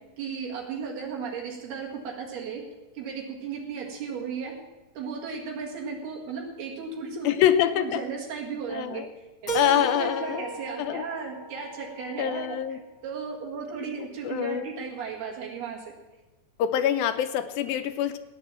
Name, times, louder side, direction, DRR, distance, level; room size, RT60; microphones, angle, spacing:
voice 1, 0.2-2.6 3.0-4.5 5.0-7.4 7.8-9.3 9.6-12.8 13.0-15.9, right 5 dB, 80° right, -2 dB, 3.9 m, -35 dB
voice 2, 7.2-8.0 8.7-9.1 9.5-10.5 10.8-11.1 12.2-12.8 14.2-14.7 16.6-18.2, left 10 dB, 80° left, 9 dB, 2.4 m, -25 dB
Keyboard (musical), 9.5-12.4, right 1 dB, 30° left, 1.7 m, -34 dB
15.5 x 9.8 x 7.5 m, 1.1 s
omnidirectional pair, 4.4 m